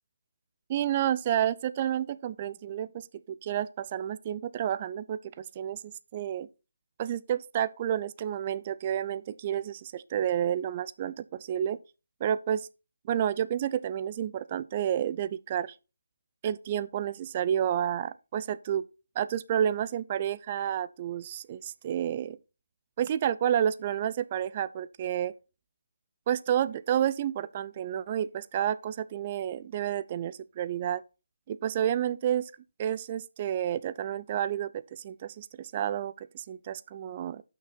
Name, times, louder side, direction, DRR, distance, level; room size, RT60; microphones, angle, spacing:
voice 1, 0.7-5.8 6.1-6.5 7.0-11.8 12.2-12.7 13.1-15.7 16.4-18.8 19.2-22.4 23.0-25.3 26.3-31.0 31.5-32.5 32.8-37.4, right 10 dB, 30° right, 0.3 m, -30 dB
8.1 x 6.0 x 4.0 m
figure-of-eight pair, 160°, 0 cm